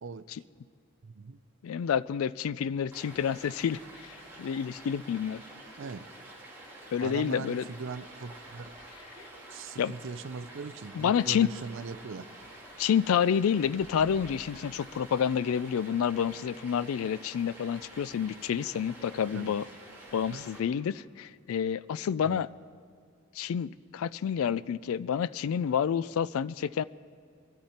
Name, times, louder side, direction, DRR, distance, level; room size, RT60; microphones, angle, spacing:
voice 1, 1.0-1.4 5.8-6.0 7.0-8.7 9.5-12.2 19.3-19.6 20.3-20.4 22.2-22.4, right 4 dB, 55° right, 12 dB, 0.5 m, -40 dB
voice 2, 1.6-5.4 6.9-7.7 9.2-9.3 9.8-9.9 10.9-11.5 12.8-19.7 20.1-22.5 23.4-26.8, left 8 dB, 70° left, 18 dB, 0.3 m, -29 dB
Stream, 2.9-20.6, right 1 dB, 10° right, 2.2 m, -49 dB
23.0 x 13.5 x 4.3 m, 2.2 s
head